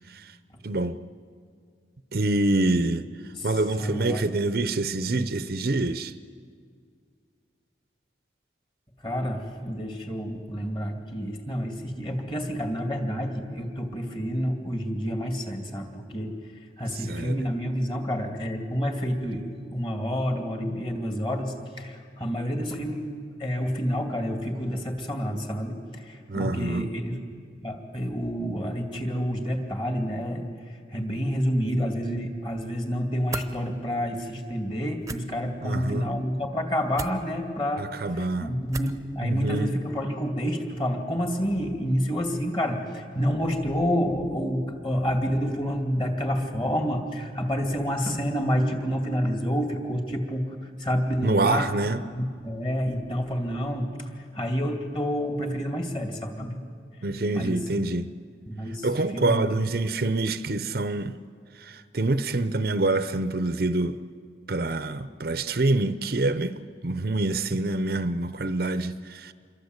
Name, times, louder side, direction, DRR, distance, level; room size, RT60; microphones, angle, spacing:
voice 1, 0.6-1.0 2.1-3.1 3.4-6.1 17.1-17.5 26.3-26.9 35.6-36.1 37.8-38.5 39.2-39.7 51.2-52.0 57.0-58.1 58.8-61.2 61.6-64.0 64.5-69.3, right 2 dB, 55° right, 0.7 m, -26 dB
voice 2, 3.8-4.2 5.1-5.3 9.0-16.3 16.8-23.1 23.4-27.2 27.6-30.5 30.9-51.7 52.1-56.6 57.3-57.6 58.5-59.6, equal, 25° left, 2.7 m, -29 dB
sound 1, 33.3-33.5 35.0-35.2 36.9-37.2 38.7-39.0, right 3 dB, 15° right, 0.9 m, -34 dB
27.0 x 22.5 x 8.1 m
head